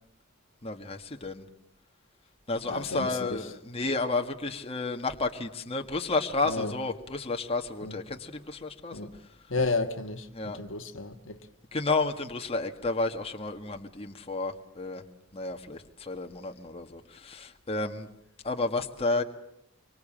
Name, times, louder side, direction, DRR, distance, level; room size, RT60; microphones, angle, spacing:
voice 1, 0.6-1.4 2.5-9.0 10.3-10.6 11.7-15.0 15.3-18.1 18.4-19.2, left 3 dB, 30° left, 1.7 m, -31 dB
voice 2, 2.7-3.4 6.4-6.7 7.8-8.0 8.9-9.1 9.5-11.4, left 3 dB, 60° left, 1.7 m, -32 dB
25.5 x 24.5 x 8.8 m
head